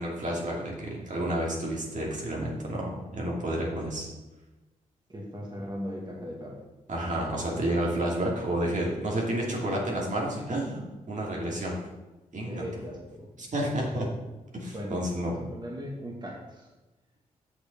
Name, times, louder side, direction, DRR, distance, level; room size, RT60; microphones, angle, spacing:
voice 1, 0.0-4.1 6.9-11.8 12.3-12.6 13.4-14.1 14.5-15.3, right 1 dB, 60° right, -3 dB, 2.8 m, -30 dB
voice 2, 5.1-6.6 12.5-13.3 14.7-16.7, equal, 30° right, -2 dB, 2.4 m, -38 dB
8.2 x 6.5 x 5.5 m, 1.1 s
supercardioid pair, 45°, 15 cm